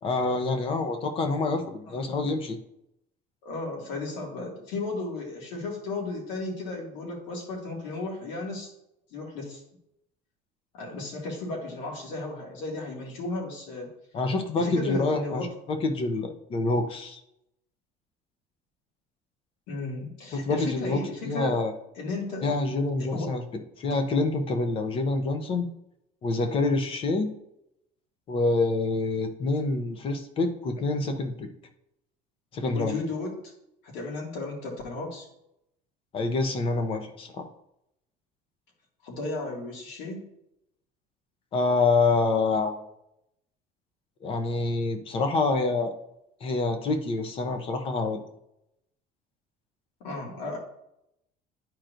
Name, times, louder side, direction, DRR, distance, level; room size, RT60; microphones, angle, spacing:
voice 1, 0.0-2.6 14.1-17.2 20.3-21.7 22.4-23.4 23.8-25.7 26.2-27.3 28.3-31.5 32.5-33.0 36.1-37.5 41.5-42.8 44.2-45.9 46.4-48.2, left 3 dB, 30° left, 7 dB, 0.7 m, -26 dB
voice 2, 3.4-8.7 9.1-9.6 10.7-13.9 14.6-15.5 19.7-21.6 22.0-22.5 23.0-23.3 32.7-33.3 33.8-35.3 39.0-40.2 50.0-50.6, left 2 dB, 90° left, 0 dB, 2.0 m, -34 dB
10.5 x 4.4 x 2.5 m, 0.81 s
cardioid pair, 175°, 18 cm